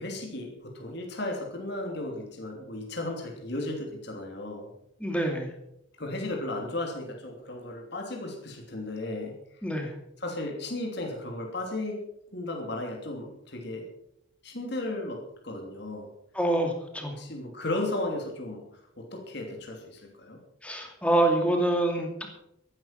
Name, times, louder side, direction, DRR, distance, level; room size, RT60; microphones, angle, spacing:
voice 1, 0.0-4.7 6.0-9.3 10.2-12.0 12.3-13.9 14.4-16.1 17.2-20.4, left 2 dB, 55° left, 1 dB, 3.1 m, -35 dB
voice 2, 5.0-5.5 9.6-9.9 16.3-17.2 20.6-22.3, right 1 dB, 5° left, 2 dB, 2.5 m, -26 dB
14.5 x 12.0 x 5.8 m, 0.79 s
head